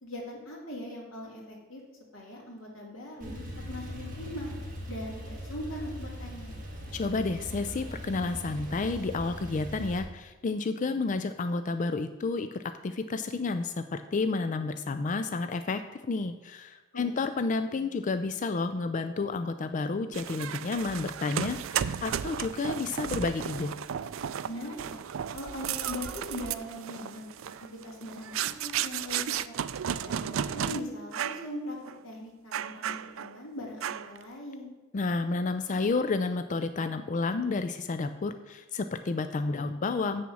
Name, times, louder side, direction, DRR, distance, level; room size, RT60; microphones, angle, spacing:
voice 1, 0.0-1.8 2.1-3.4 3.7-4.5 4.9-6.6 16.9-17.2 24.4-25.0 25.3-27.3 27.6-29.5 30.0-31.8 32.0-34.7, left 1 dB, 80° left, -3 dB, 2.9 m, -40 dB
Male speech man speaking / Car / Idling, 3.2-10.0, equal, 45° right, 2.2 m, -40 dB
voice 2, 6.9-23.7 34.9-40.2, left 3 dB, 40° left, 9 dB, 0.4 m, -31 dB
sound 1, 20.1-30.8 31.1-31.5 31.8-32.0 32.5-33.4 33.8-34.2, right 9 dB, 80° right, 0.4 m, -34 dB
7.5 x 7.0 x 6.1 m, 1.2 s
head